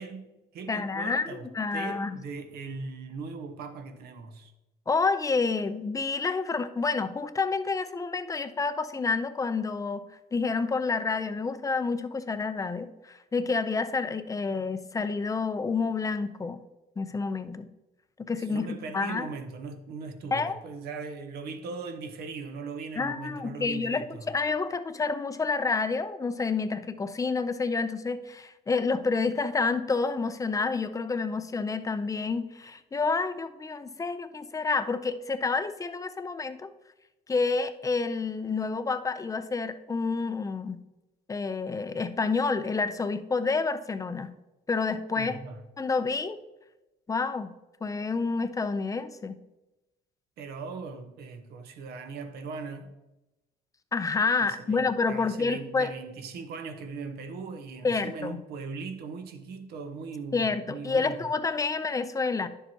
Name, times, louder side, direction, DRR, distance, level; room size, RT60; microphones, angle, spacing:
voice 1, 0.0-4.5 18.4-24.3 45.2-45.6 50.4-52.9 54.4-61.3, right 4 dB, 70° right, 1.0 m, -39 dB
voice 2, 0.7-2.2 4.9-10.0 10.3-16.6 17.0-17.7 18.2-19.3 20.3-20.6 23.0-36.7 37.3-40.8 41.3-44.3 44.7-45.4 45.8-46.4 47.1-47.5 47.8-49.4 53.9-55.9 57.8-58.4 60.3-62.5, left 4 dB, 20° left, 0.5 m, -29 dB
10.5 x 6.9 x 2.9 m
cardioid pair, 110°, 17 cm